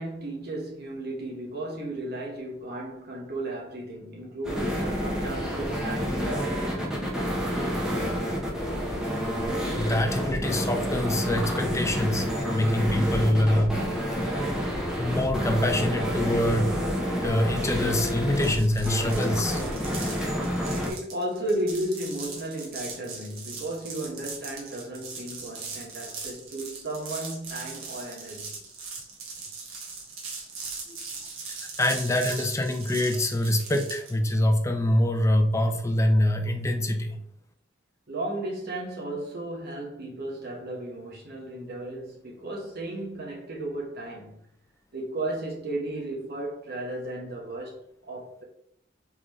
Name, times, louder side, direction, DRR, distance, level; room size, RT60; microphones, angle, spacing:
voice 1, 0.0-8.0 20.9-28.6 38.1-44.4 44.9-48.4, right 1 dB, 50° right, 1.2 m, -35 dB
sound 1, 4.4-20.9, equal, 5° right, 0.8 m, -29 dB
voice 2, 9.8-12.3 12.5-13.7 15.0-16.8 17.2-19.7 31.8-37.2, left 1 dB, 15° left, 0.5 m, -25 dB
sound 2, 18.4-34.2, right 4 dB, 90° right, 1.2 m, -39 dB
3.9 x 3.7 x 3.1 m
head